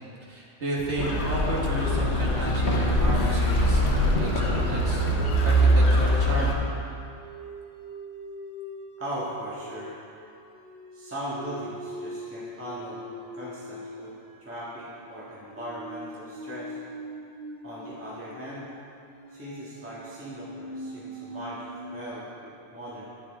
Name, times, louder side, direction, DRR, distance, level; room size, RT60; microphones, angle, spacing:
voice 1, 0.3-5.0 5.4-6.6, right 2 dB, 55° right, -4 dB, 1.9 m, -32 dB
sound 1, 1.0-6.5, equal, 60° left, 1.3 m, -22 dB
sound 2, 4.2-22.1, right 1 dB, 40° right, 0.9 m, -43 dB
voice 2, 9.0-10.0 10.9-13.0 13.3-14.1 14.4-16.8 17.6-18.7 19.3-23.1, equal, 10° right, -9 dB, 1.6 m, -38 dB
10.5 x 9.0 x 3.6 m, 2.5 s
omnidirectional pair, 1.4 m